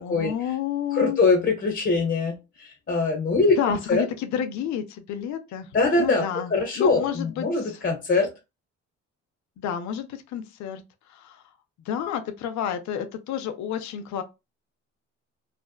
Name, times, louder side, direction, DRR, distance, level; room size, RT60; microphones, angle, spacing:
voice 1, 0.0-1.2 3.6-5.7 6.0-7.8 9.6-10.8 11.1-11.4 11.9-14.2, left 9 dB, 70° left, 0.5 m, -30 dB
voice 2, 0.9-3.6 3.9-4.0 5.7-6.2 6.5-8.3, left 3 dB, 40° left, 0.7 m, -22 dB
2.5 x 2.1 x 2.3 m
cardioid pair, 90°, 30 cm